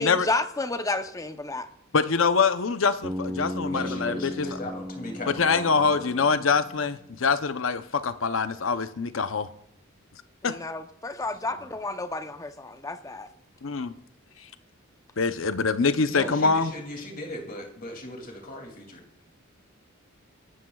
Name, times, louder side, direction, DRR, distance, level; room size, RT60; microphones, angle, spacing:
voice 1, 0.0-1.7 10.4-13.3, left 2 dB, 15° left, 0.7 m, -31 dB
voice 2, 1.9-4.5 5.3-9.5 10.4-10.6 13.6-13.9 15.2-16.7, left 5 dB, 75° left, 0.7 m, -24 dB
Bass guitar, 3.0-7.0, left 1 dB, 5° right, 1.1 m, -36 dB
voice 3, 3.7-6.2 11.4-11.7 16.1-19.0, left 1 dB, 45° left, 2.7 m, -38 dB
24.5 x 12.5 x 2.4 m
head